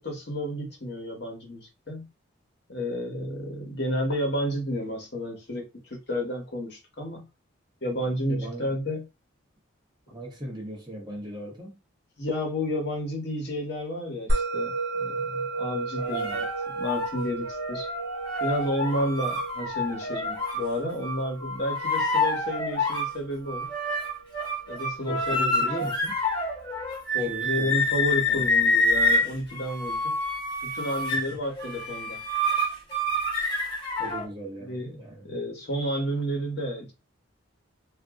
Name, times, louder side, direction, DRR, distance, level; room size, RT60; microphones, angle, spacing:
voice 1, 0.0-2.1 2.7-7.3 7.8-9.0 12.2-16.4 16.8-17.9 18.4-23.7 24.7-25.7 27.1-30.1 30.6-32.2 32.5-32.7 34.6-36.9, equal, 55° left, 1.0 m, -31 dB
voice 2, 8.3-8.8 10.1-11.8 16.0-16.4 25.0-26.1 27.2-27.8 28.3-28.5 31.1-31.2 34.0-35.3, right 1 dB, 20° right, 0.7 m, -38 dB
Musical instrument, 14.3-24.9, right 2 dB, 80° right, 0.8 m, -34 dB
sound 1, 16.0-20.7 21.0-23.1 23.5-34.3, left 1 dB, 25° left, 1.1 m, -27 dB
2.5 x 2.0 x 3.5 m
head